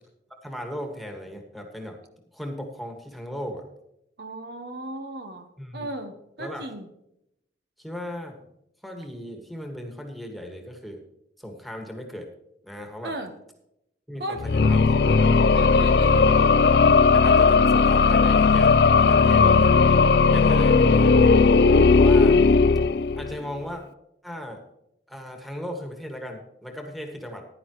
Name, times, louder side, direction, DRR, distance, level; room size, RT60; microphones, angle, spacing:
voice 1, 0.4-2.0 2.3-3.7 5.6-5.9 6.4-6.7 7.8-8.5 8.8-11.0 11.4-12.3 12.6-13.1 14.1-15.0 17.1-19.8 20.3-21.3 21.9-22.4 23.2-23.8 24.2-24.6 25.1-27.4, equal, ahead, 2 dB, 1.8 m, -37 dB
voice 2, 4.2-6.9 13.0-13.3 14.2-14.5 15.5-16.4 20.5-21.1, right 1 dB, 65° right, 6 dB, 1.3 m, -36 dB
sound 1, 14.4-23.5, left 4 dB, 65° left, 0.5 m, -17 dB
15.0 x 11.0 x 3.1 m, 0.80 s
head